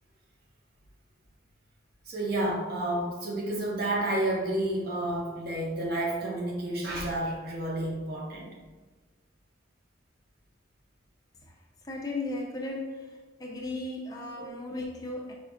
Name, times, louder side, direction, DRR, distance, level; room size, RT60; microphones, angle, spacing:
voice 1, 2.1-8.5 14.4-14.5, right 1 dB, 50° right, -1 dB, 0.6 m, -30 dB
voice 2, 11.9-13.1 13.4-15.3, left 2 dB, 20° left, -1 dB, 0.3 m, -35 dB
4.9 x 2.3 x 2.4 m, 1.3 s
head